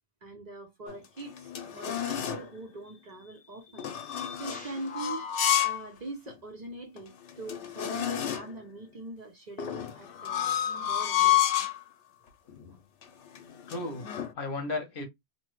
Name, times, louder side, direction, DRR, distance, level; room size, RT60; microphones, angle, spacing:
voice 1, 0.2-3.9 4.4-5.3 5.6-11.4, right 2 dB, 45° right, 0.7 m, -42 dB
sound 1, 0.9-2.5 3.8-5.9 6.3-6.4 7.0-7.1 7.3-8.6 9.6-11.8 12.5-12.7 13.0-14.3, left 11 dB, 90° left, 1.0 m, -30 dB
sound 2, 1.0-1.1 2.1-6.3, left 3 dB, 10° left, 0.8 m, -52 dB
voice 2, 10.3-11.7 12.5-12.8 13.7-14.0 14.3-15.1, left 2 dB, 55° left, 0.9 m, -37 dB
2.9 x 2.1 x 3.0 m
omnidirectional pair, 1.2 m